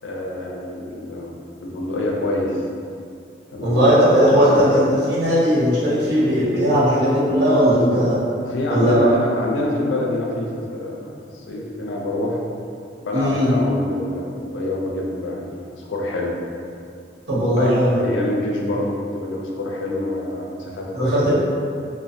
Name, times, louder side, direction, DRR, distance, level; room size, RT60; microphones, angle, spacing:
voice 1, 0.0-1.3 1.6-2.6 3.5-3.8 4.3-4.6 8.4-12.4 13.0-16.3 17.6-21.2, left 1 dB, 90° left, -2 dB, 0.4 m, -26 dB
voice 2, 3.6-8.2 8.7-9.0 13.1-13.5 17.3-18.0 20.9-21.4, equal, 70° right, -10 dB, 0.9 m, -17 dB
2.4 x 2.1 x 2.5 m, 2.4 s
head